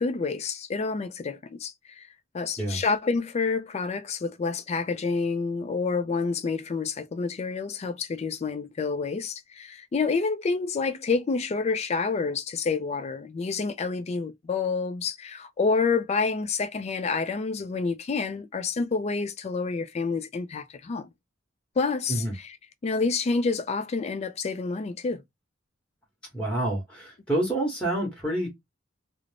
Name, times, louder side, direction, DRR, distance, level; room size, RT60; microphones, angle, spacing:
voice 1, 0.0-2.1 2.3-21.1 21.8-22.2 22.8-25.2, left 4 dB, 35° left, 0.3 m, -28 dB
voice 2, 26.3-28.5, right 1 dB, 5° left, 1.0 m, -28 dB
2.4 x 2.1 x 3.2 m
head